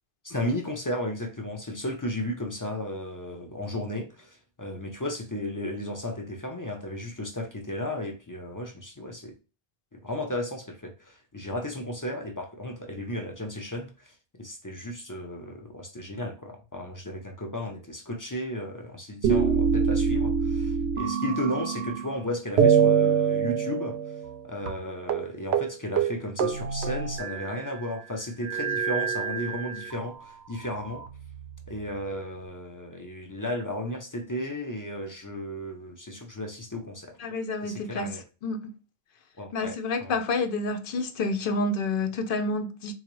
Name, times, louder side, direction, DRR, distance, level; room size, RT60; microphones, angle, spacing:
voice 1, 0.2-9.3 9.9-24.0 24.4-31.0 31.7-37.1 37.6-38.2 39.4-40.1, left 1 dB, 25° left, 0.5 m, -34 dB
sound 1, 19.2-22.2 22.6-24.4 24.7-24.8 25.1-25.3 25.5-25.7 26.0-27.7 28.4-30.0 30.7-31.6, right 7 dB, 85° right, 0.9 m, -25 dB
voice 2, 37.2-38.7 39.5-42.9, left 3 dB, 65° left, 0.7 m, -29 dB
3.9 x 2.5 x 3.0 m
omnidirectional pair, 1.1 m